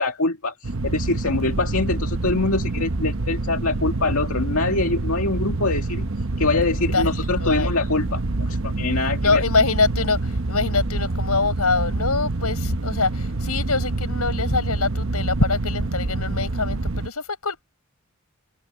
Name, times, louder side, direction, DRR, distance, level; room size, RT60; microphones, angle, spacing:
voice 1, 0.0-6.1 6.4-9.4, left 3 dB, 70° left, 2.1 m, -24 dB
sound 1, 0.6-17.1, right 2 dB, 60° right, 0.9 m, -26 dB
voice 2, 6.9-7.7 9.2-17.6, left 3 dB, 90° left, 6.5 m, -24 dB
head